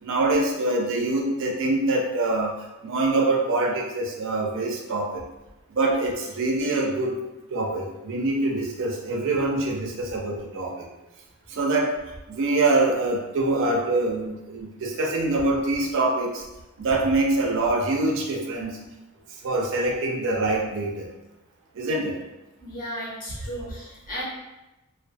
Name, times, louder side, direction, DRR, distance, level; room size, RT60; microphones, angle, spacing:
voice 1, 0.0-2.5 2.8-5.2 5.7-7.1 7.5-10.9 11.5-11.9 12.3-16.4 16.8-18.8 19.3-21.1 21.7-22.2, right 2 dB, 60° right, 0 dB, 0.4 m, -24 dB
voice 2, 22.6-24.2, equal, 40° left, -6 dB, 0.7 m, -35 dB
2.2 x 2.2 x 2.5 m, 1.0 s
head